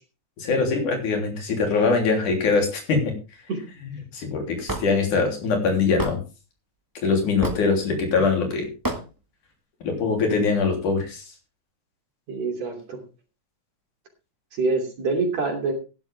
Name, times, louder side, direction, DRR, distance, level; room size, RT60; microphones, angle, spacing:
voice 1, 0.4-3.1 4.1-6.2 7.0-8.7 9.8-11.2, left 4 dB, 90° left, 3 dB, 4.7 m, -22 dB
Hammer / Wood, 4.7-4.9 6.0-6.2 7.4-7.7 8.8-9.0, right 2 dB, 20° right, 0.5 m, -27 dB
voice 2, 12.3-13.0 14.5-15.7, right 3 dB, 60° right, 2 dB, 4.1 m, -25 dB
15.0 x 11.0 x 3.5 m, 0.32 s
omnidirectional pair, 3.4 m